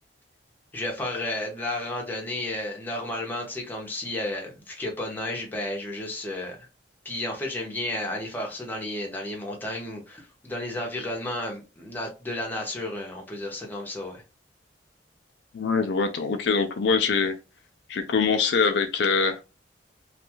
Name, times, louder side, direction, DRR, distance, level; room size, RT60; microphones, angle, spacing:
voice 1, 0.7-6.7 7.0-14.2, left 1 dB, 10° left, 0.7 m, -32 dB
voice 2, 15.5-17.4 17.9-19.4, left 5 dB, 60° left, 0.4 m, -23 dB
2.5 x 2.3 x 2.9 m
head